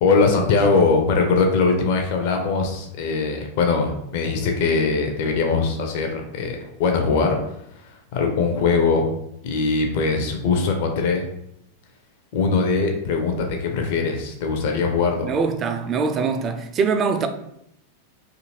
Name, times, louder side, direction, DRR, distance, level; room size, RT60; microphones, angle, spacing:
voice 1, 0.0-7.4 7.8-9.1 9.4-11.3 12.3-15.3, left 4 dB, 50° left, 0.5 m, -21 dB
voice 2, 15.2-17.3, right 5 dB, 30° right, 0.3 m, -23 dB
2.7 x 2.5 x 2.8 m
figure-of-eight pair, 90°, 0 cm